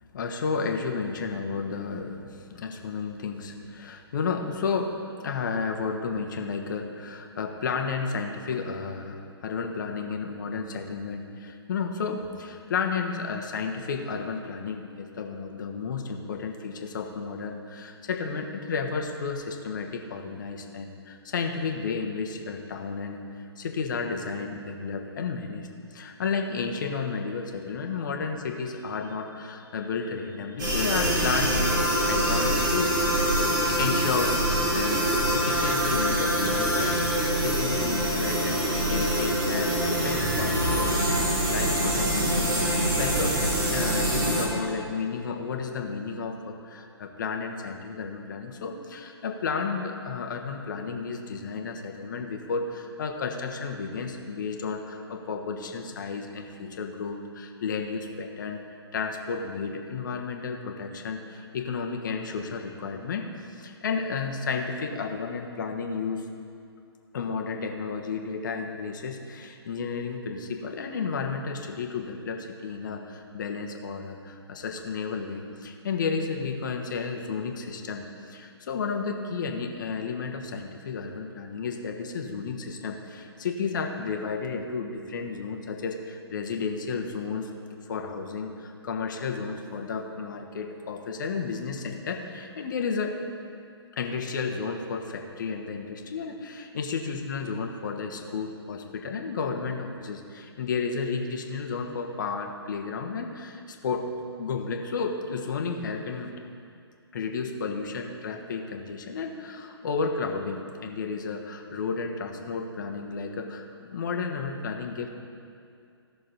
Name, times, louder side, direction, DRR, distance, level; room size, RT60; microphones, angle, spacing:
voice 1, 0.1-23.2 23.6-33.0 33.6-43.3 43.7-58.6 58.9-66.2 67.1-87.5 87.8-93.2 94.0-104.1 104.4-106.3 107.1-115.1, left 5 dB, 45° left, 3 dB, 1.2 m, -32 dB
sound 1, 30.6-44.4, right 1 dB, 45° right, 2.9 m, -25 dB
16.5 x 6.5 x 4.1 m, 2.5 s
figure-of-eight pair, 130°, 14 cm